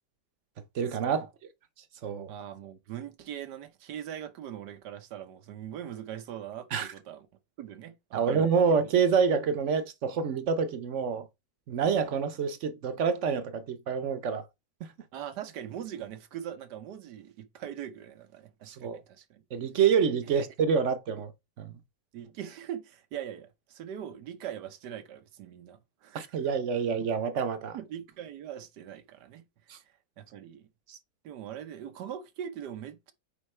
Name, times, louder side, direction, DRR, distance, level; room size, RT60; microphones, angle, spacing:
voice 1, 0.7-1.3 2.0-2.3 6.7-6.9 8.1-11.3 11.7-14.4 18.8-19.0 19.5-21.3 21.6-21.7 26.1-27.8 29.7-29.8 30.9-31.0, right 6 dB, 60° right, 0.9 m, -27 dB
voice 2, 2.3-7.3 7.6-8.8 15.1-19.4 20.3-20.4 22.1-26.4 27.7-29.4 30.2-30.6 31.2-33.1, right 10 dB, 85° right, 1.5 m, -41 dB
8.5 x 4.5 x 3.2 m
omnidirectional pair, 1.7 m